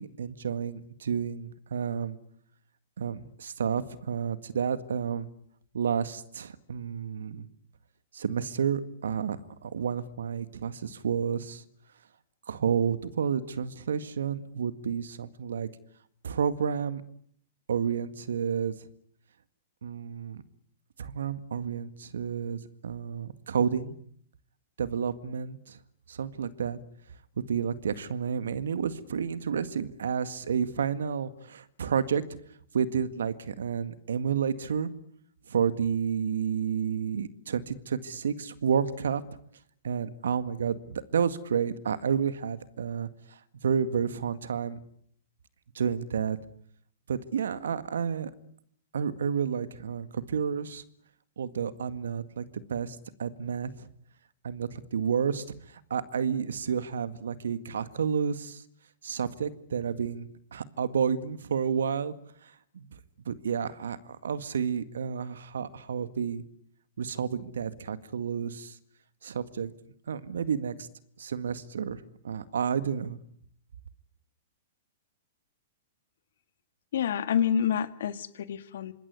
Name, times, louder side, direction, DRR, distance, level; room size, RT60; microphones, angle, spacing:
voice 1, 0.0-2.2 3.0-5.3 5.7-7.5 8.1-9.4 9.6-11.6 12.5-15.7 16.2-17.0 17.7-18.9 19.8-20.4 21.0-24.0 24.8-25.8 26.1-26.8 27.4-32.2 32.7-34.9 35.5-39.2 39.8-44.8 45.7-46.4 47.1-48.3 48.9-50.8 51.4-53.9 54.4-58.6 59.0-62.1 62.4-62.9 63.3-66.4 67.0-68.8 69.2-69.7 70.1-70.9 71.2-73.2, right 7 dB, 70° right, 13 dB, 1.9 m, -30 dB
voice 2, 76.9-78.9, left 8 dB, 65° left, 12 dB, 1.9 m, -28 dB
26.5 x 20.5 x 9.8 m, 0.67 s
hypercardioid pair, 110°, 0 cm